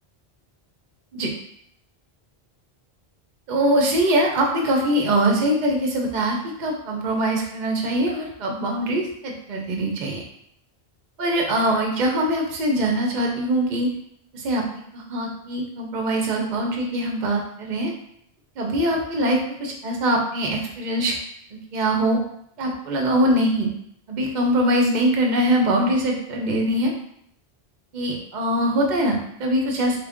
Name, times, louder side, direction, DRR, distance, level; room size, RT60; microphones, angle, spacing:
voice 1, 3.5-10.2 11.2-13.9 14.3-14.6 14.9-17.9 18.6-21.1 21.7-22.2 22.6-23.7 24.1-26.9 27.9-30.1, right 1 dB, 50° right, 0 dB, 0.7 m, -22 dB
3.3 x 2.4 x 3.5 m, 0.70 s
omnidirectional pair, 1.1 m